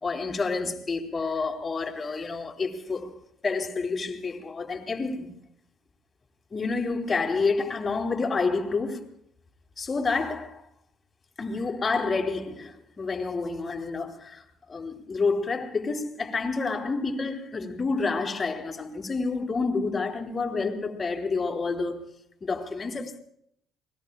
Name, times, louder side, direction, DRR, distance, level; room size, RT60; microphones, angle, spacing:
voice 1, 0.0-3.1 3.4-5.3 6.5-9.1 9.8-10.6 11.4-22.1 22.4-23.2, left 4 dB, 25° left, 3.4 m, -29 dB
29.0 x 20.5 x 2.4 m
cardioid pair, 115°, 0 cm